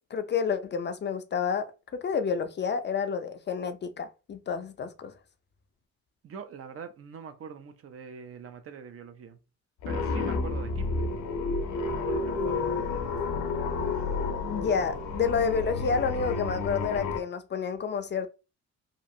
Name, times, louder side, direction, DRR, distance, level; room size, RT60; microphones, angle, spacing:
voice 1, 0.1-1.6 1.9-5.1 14.5-18.3, left 6 dB, 35° left, 0.4 m, -29 dB
voice 2, 6.2-9.4 9.9-11.1 11.8-13.4, right 6 dB, 50° right, 0.6 m, -44 dB
aeroplane drama, 9.8-17.2, left 3 dB, 90° left, 0.6 m, -30 dB
2.9 x 2.4 x 2.6 m
cardioid pair, 90°, 30 cm